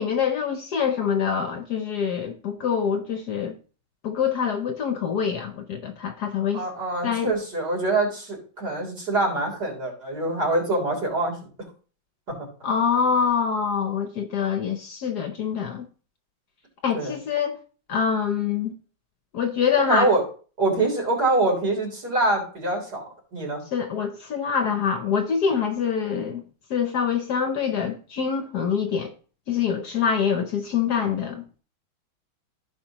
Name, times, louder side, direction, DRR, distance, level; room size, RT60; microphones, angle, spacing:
voice 1, 0.0-3.6 4.0-6.7 7.0-7.3 12.6-15.9 16.8-17.6 17.9-18.7 19.3-20.1 23.7-26.4 26.7-29.1 29.5-31.4, left 7 dB, 60° left, 1.2 m, -25 dB
voice 2, 6.5-11.4 16.9-17.2 19.8-20.2 20.6-23.0 23.3-23.6, right 2 dB, 50° right, 4.1 m, -24 dB
15.0 x 5.1 x 2.9 m
omnidirectional pair, 2.2 m